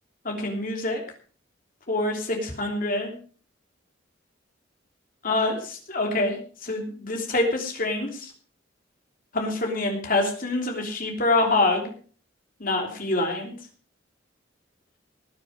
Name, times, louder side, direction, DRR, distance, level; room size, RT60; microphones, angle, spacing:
voice 1, 0.2-1.0 1.9-3.1 5.2-8.3 9.3-11.9 12.6-13.5, left 2 dB, 45° left, 1 dB, 3.3 m, -26 dB
19.0 x 7.1 x 6.5 m, 0.42 s
head